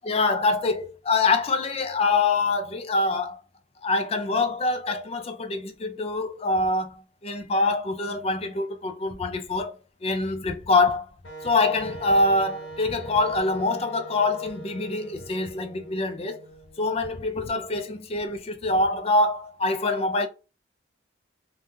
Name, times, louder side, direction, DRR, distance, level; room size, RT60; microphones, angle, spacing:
voice 1, 0.0-3.4 3.8-9.7 10.0-11.1 11.4-16.4 16.8-20.3, left 3 dB, 30° left, 0.4 m, -25 dB
Wind instrument woodwind instrument, 11.2-17.1, right 3 dB, 80° left, 1.1 m, -42 dB
3.5 x 2.3 x 2.6 m
head